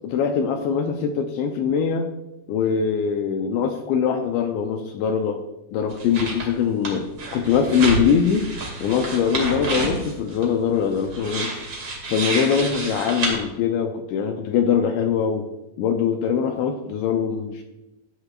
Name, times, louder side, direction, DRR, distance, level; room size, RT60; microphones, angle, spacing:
voice 1, 0.0-2.1 2.5-5.4 5.7-8.5 8.8-11.6 12.1-15.5 15.8-17.6, left 7 dB, 80° left, 4 dB, 2.6 m, -22 dB
sound 1, 5.9-6.5 6.8-13.4, right 2 dB, 50° right, 1.6 m, -29 dB
14.5 x 10.0 x 2.4 m, 0.96 s
omnidirectional pair, 5.8 m